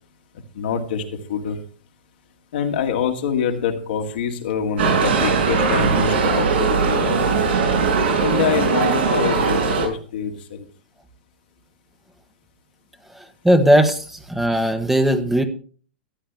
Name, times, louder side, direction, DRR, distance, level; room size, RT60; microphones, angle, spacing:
voice 1, 0.5-1.6 2.5-7.4 8.2-10.7, left 7 dB, 65° left, 3 dB, 2.2 m, -25 dB
sound 1, 4.8-9.9, right 5 dB, 75° right, 5.7 m, -19 dB
voice 2, 13.1-15.4, equal, 5° right, 6 dB, 1.3 m, -18 dB
14.5 x 10.5 x 3.5 m, 0.42 s
hypercardioid pair, 115°, 6 cm